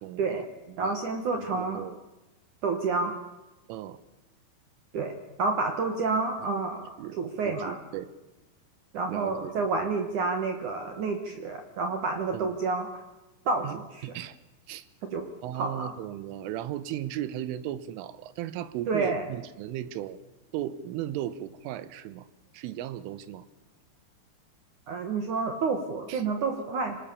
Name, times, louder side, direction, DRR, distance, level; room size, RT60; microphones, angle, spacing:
voice 1, 0.0-1.0 1.3-2.0 3.7-4.0 6.4-6.5 7.0-8.1 9.1-9.6 12.3-12.6 13.6-13.8 14.0-14.4 14.7-14.9 15.4-20.2 20.5-22.3 22.5-23.5 26.1-26.2, right 12 dB, 85° right, 15 dB, 3.6 m, -36 dB
voice 2, 0.8-1.8 2.6-3.2 4.9-7.8 8.9-13.0 13.5-14.1 15.1-15.3 15.6-15.9 18.9-19.3 24.9-27.0, right 4 dB, 60° right, 5 dB, 2.1 m, -29 dB
25.0 x 19.0 x 7.1 m, 1.1 s
omnidirectional pair, 5.6 m